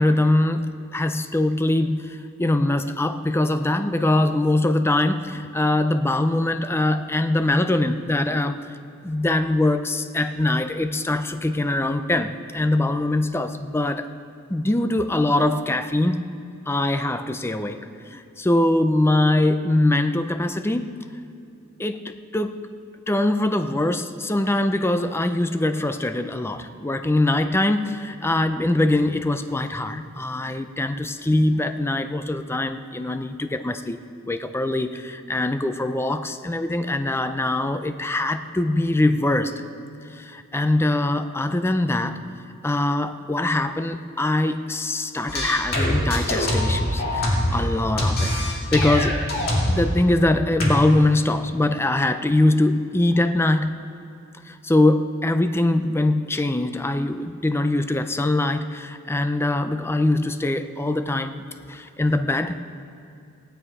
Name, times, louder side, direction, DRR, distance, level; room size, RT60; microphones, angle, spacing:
voice 1, 0.0-8.6 9.0-14.1 14.5-16.2 16.7-21.1 21.8-22.7 23.1-34.0 34.3-39.6 40.1-42.2 42.6-49.2 49.7-53.8 54.5-62.6, left 1 dB, 10° left, 9 dB, 0.5 m, -22 dB
sound 1, 45.3-47.7 48.0-49.9 50.6-50.7, left 1 dB, 45° left, 2.5 m, -23 dB
18.0 x 9.3 x 4.8 m, 2.5 s
head